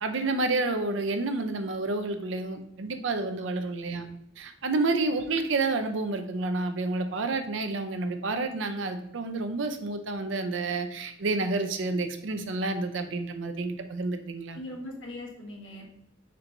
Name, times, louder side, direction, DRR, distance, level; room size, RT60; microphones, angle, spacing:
voice 1, 0.0-4.0 4.4-14.6, right 3 dB, 75° right, 7 dB, 0.5 m, -29 dB
voice 2, 14.5-15.8, left 1 dB, 65° left, -1 dB, 1.3 m, -40 dB
4.5 x 4.4 x 2.6 m, 0.79 s
head